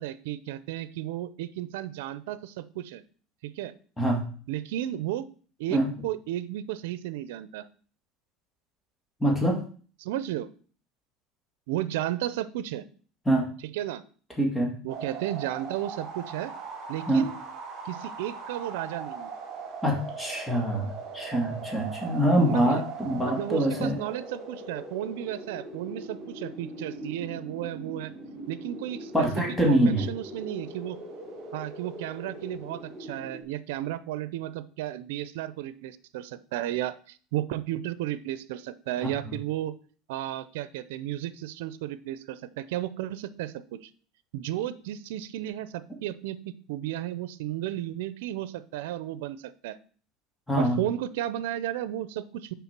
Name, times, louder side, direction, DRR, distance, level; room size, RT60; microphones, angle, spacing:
voice 1, 0.0-3.0 3.4-3.7 4.5-5.2 5.6-7.6 10.0-10.5 11.7-12.9 13.7-14.0 14.8-16.5 16.9-17.3 17.8-19.3 22.4-22.8 23.2-28.1 28.5-31.0 31.5-39.7 40.1-43.9 44.3-49.8 50.6-52.5, right 13 dB, 85° right, 15 dB, 0.6 m, -33 dB
voice 2, 9.2-9.6 13.3-13.5 14.4-14.7 17.1-17.3 19.8-24.0 29.1-30.1 39.0-39.3 50.5-50.8, right 1 dB, 5° left, 0 dB, 2.2 m, -25 dB
sound 1, 14.9-33.4, right 3 dB, 45° right, 3.1 m, -40 dB
6.9 x 4.9 x 6.0 m, 0.42 s
supercardioid pair, 140°, 0 cm